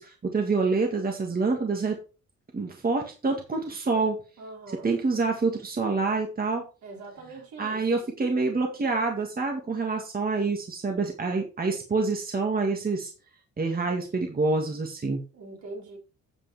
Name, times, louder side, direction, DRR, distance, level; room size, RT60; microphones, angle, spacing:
voice 1, 0.0-2.0 2.5-4.2 4.7-6.6 7.3-13.1 13.6-15.2, right 3 dB, 30° right, 2.0 m, -27 dB
voice 2, 4.4-4.9 6.8-7.8 15.3-16.0, right 3 dB, 70° right, 4.7 m, -42 dB
9.1 x 7.0 x 3.5 m
cardioid pair, 90°, 30 cm